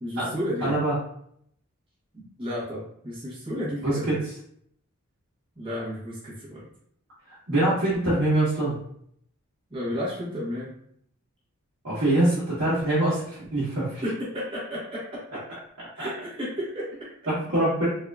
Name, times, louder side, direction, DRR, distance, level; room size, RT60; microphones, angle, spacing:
voice 1, 0.0-0.8 2.1-4.2 5.6-6.6 9.7-10.7 14.0-15.2 15.9-17.1, equal, 25° right, -7 dB, 0.8 m, -32 dB
voice 2, 0.6-0.9 3.8-4.2 7.3-8.8 11.8-14.0 16.0-16.1 17.3-17.9, right 1 dB, 65° right, -10 dB, 1.1 m, -24 dB
3.5 x 2.4 x 2.3 m, 0.67 s
head